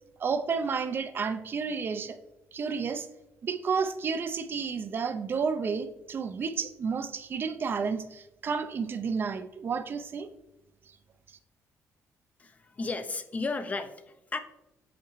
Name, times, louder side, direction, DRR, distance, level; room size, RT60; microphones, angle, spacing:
voice 1, 0.2-2.2 2.5-3.1 3.4-10.3, right 5 dB, 45° right, 10 dB, 0.5 m, -31 dB
voice 2, 12.4-14.4, left 3 dB, 30° left, 9 dB, 0.5 m, -34 dB
7.1 x 4.4 x 3.1 m, 0.94 s
cardioid pair, 110°, 5 cm